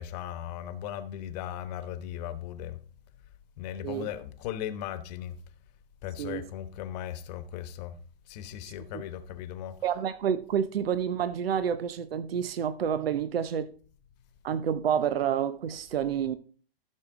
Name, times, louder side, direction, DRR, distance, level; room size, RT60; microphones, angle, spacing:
voice 1, 0.0-2.8 3.6-5.4 6.0-7.9 8.3-10.0, left 10 dB, 45° left, 1.2 m, -37 dB
voice 2, 9.8-13.7 14.4-16.4, right 8 dB, 75° right, 0.8 m, -29 dB
14.0 x 6.3 x 3.6 m
hypercardioid pair, 125°, 30 cm